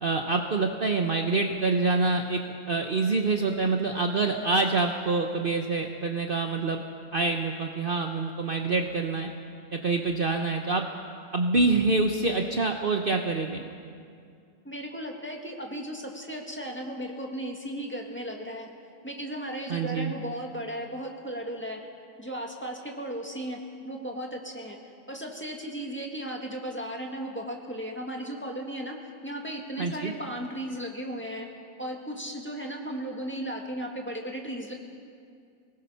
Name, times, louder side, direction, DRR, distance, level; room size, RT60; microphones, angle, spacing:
voice 1, 0.0-2.4 2.7-6.8 7.1-9.3 9.7-10.8 11.3-13.6 19.7-20.1 29.8-30.1, right 3 dB, 40° right, 3 dB, 1.0 m, -26 dB
voice 2, 14.6-18.7 19.0-21.8 22.2-23.6 23.8-24.8 25.1-28.9 29.2-31.5 31.8-34.7, right 1 dB, 10° left, 0 dB, 1.9 m, -35 dB
24.0 x 19.5 x 5.7 m, 2.3 s
omnidirectional pair, 1.5 m